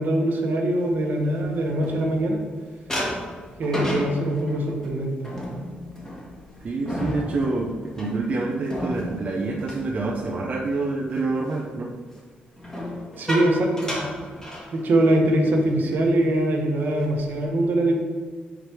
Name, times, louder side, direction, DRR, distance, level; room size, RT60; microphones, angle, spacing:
voice 1, 0.0-2.4 3.6-5.3 13.1-14.0 14.7-18.0, right 1 dB, 65° right, 1 dB, 1.2 m, -22 dB
sound 1, 1.0-2.5 2.9-10.7 11.1-11.4 12.6-15.2 15.5-15.7 16.0-16.3 16.8-17.4, left 1 dB, 20° left, 1.7 m, -33 dB
voice 2, 6.6-11.9, right 3 dB, 45° right, -1 dB, 0.7 m, -27 dB
5.0 x 4.9 x 4.6 m, 1.5 s
cardioid pair, 95°, 3 cm